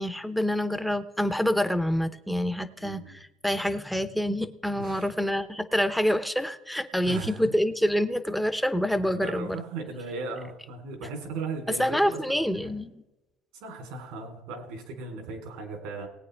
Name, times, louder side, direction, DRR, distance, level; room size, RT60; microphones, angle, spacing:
voice 1, 0.0-9.6 11.8-13.0, equal, ahead, 10 dB, 0.8 m, -27 dB
voice 2, 2.8-3.2 4.8-5.1 7.1-7.5 9.1-12.8 13.5-16.1, right 3 dB, 80° right, 4 dB, 3.5 m, -37 dB
19.5 x 8.9 x 3.4 m, 0.97 s
cardioid pair, 120°, 0 cm